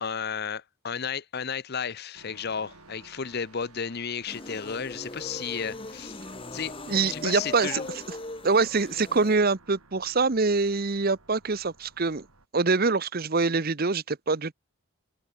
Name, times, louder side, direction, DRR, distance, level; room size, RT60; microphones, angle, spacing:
voice 1, 0.0-6.2 6.5-6.7 7.0-7.9, left 6 dB, 45° left, 0.7 m, -33 dB
sound 1, 2.1-12.5, right 3 dB, 90° right, 3.7 m, -55 dB
sound 2, 4.3-9.4, left 2 dB, 25° left, 1.5 m, -40 dB
voice 2, 6.9-7.7 8.4-12.2 12.5-14.5, right 4 dB, 45° right, 0.9 m, -24 dB
head